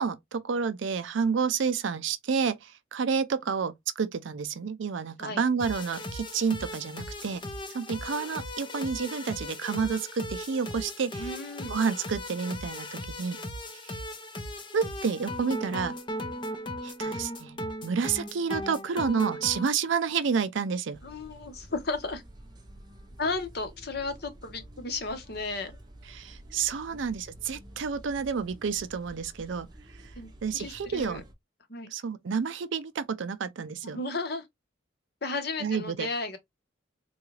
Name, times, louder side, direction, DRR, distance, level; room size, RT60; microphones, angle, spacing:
voice 1, 0.0-7.4 7.7-11.3 11.7-13.4 13.8-14.0 14.7-15.9 16.8-21.0 26.1-29.7 30.4-31.2 31.9-34.0 35.6-36.1, right 6 dB, 70° right, 0.4 m, -30 dB
sound 1, 5.6-19.7, left 1 dB, 25° left, 0.5 m, -37 dB
voice 2, 11.2-11.8 21.0-22.2 23.2-25.7 26.9-27.0 30.2-31.2 31.7-31.9 33.9-34.5 35.2-36.4, left 3 dB, 50° left, 0.9 m, -34 dB
sound 2, 20.9-31.3, right 1 dB, 20° right, 0.7 m, -50 dB
3.8 x 2.4 x 3.0 m
head